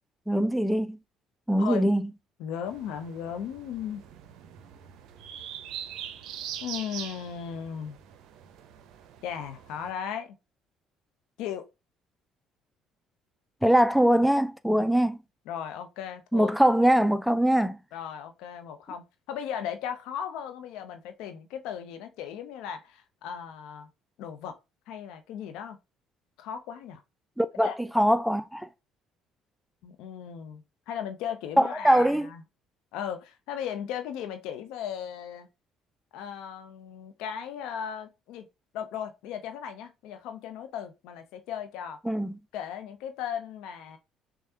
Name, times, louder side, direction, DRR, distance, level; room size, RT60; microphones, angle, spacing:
voice 1, 0.3-1.0 1.5-2.1 13.6-15.2 16.3-17.8 27.4-28.7 31.6-32.3 42.0-42.4, right 1 dB, ahead, 0.4 m, -22 dB
voice 2, 1.6-1.9 2.4-4.0 6.6-8.0 9.2-10.3 11.4-11.7 15.5-16.5 17.9-23.9 24.2-24.6 24.9-25.8 26.4-27.0 27.6-27.7 29.8-32.4 32.9-35.5 36.1-38.5 38.7-42.0 42.5-44.0, left 8 dB, 70° left, 0.7 m, -36 dB
sound 1, 2.7-9.9, right 9 dB, 70° right, 0.5 m, -43 dB
6.3 x 2.3 x 2.9 m
hypercardioid pair, 60°, 0 cm